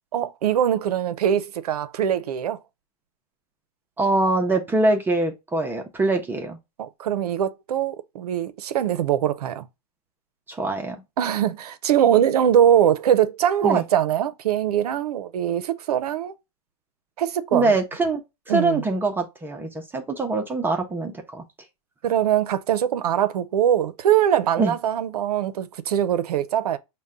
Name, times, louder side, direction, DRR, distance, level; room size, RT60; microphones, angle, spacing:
voice 1, 0.1-2.6 6.8-9.7 11.2-16.3 17.2-17.7 18.5-18.8 22.0-26.8, right 10 dB, 80° right, 0.6 m, -22 dB
voice 2, 4.0-6.6 10.5-11.0 13.6-13.8 17.5-21.4 24.6-24.7, right 2 dB, 10° right, 0.5 m, -23 dB
5.4 x 2.2 x 3.6 m
hypercardioid pair, 130°, 19 cm